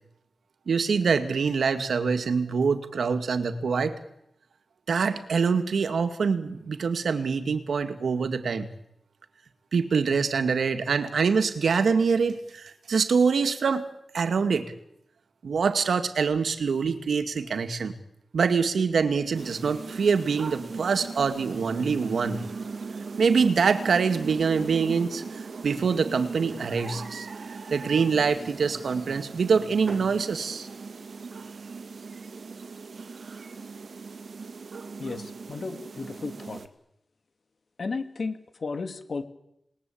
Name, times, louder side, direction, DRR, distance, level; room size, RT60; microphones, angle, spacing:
voice 1, 0.7-3.9 4.9-8.7 9.7-13.8 14.1-14.7 15.4-18.0 18.3-22.4 23.2-25.2 25.6-27.3 27.7-30.7, right 5 dB, 90° right, 9 dB, 2.1 m, -25 dB
sound 1, 19.3-36.7, right 4 dB, 60° right, 2.3 m, -39 dB
voice 2, 35.0-36.6 37.8-39.2, left 4 dB, 55° left, 9 dB, 2.5 m, -34 dB
28.5 x 20.0 x 8.7 m, 0.80 s
wide cardioid pair, 140°, 0 cm